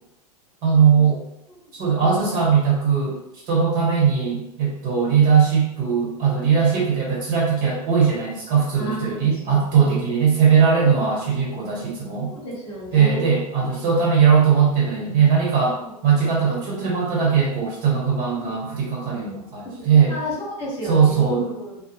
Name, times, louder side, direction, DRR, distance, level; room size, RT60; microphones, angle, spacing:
voice 1, 0.6-1.2 1.7-12.3 12.9-20.1 20.8-21.5, right 6 dB, 40° right, -4 dB, 1.2 m, -19 dB
voice 2, 2.0-2.3 8.7-10.1 10.7-10.9 12.3-13.3 15.8-15.9 18.4-18.5 20.1-21.8, equal, 30° left, -5 dB, 1.1 m, -32 dB
2.1 x 2.1 x 3.1 m, 0.84 s
hypercardioid pair, 100°, 20 cm